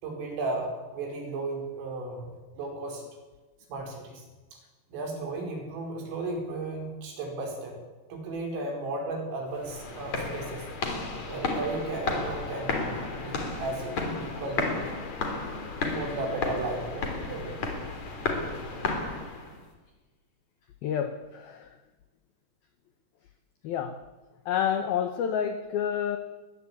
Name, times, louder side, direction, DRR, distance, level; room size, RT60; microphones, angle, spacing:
voice 1, 0.0-2.3 2.5-3.1 3.7-4.2 4.5-4.6 4.9-7.8 8.1-10.7 11.3-15.0 15.9-17.6, right 2 dB, 75° right, 2 dB, 7.3 m, -35 dB
sound 1, 9.6-19.6, left 3 dB, 40° left, 4.1 m, -33 dB
voice 2, 20.8-21.8 23.6-24.0 24.5-26.2, left 8 dB, 80° left, 9 dB, 2.1 m, -29 dB
21.0 x 20.5 x 8.6 m, 1.2 s
omnidirectional pair, 5.9 m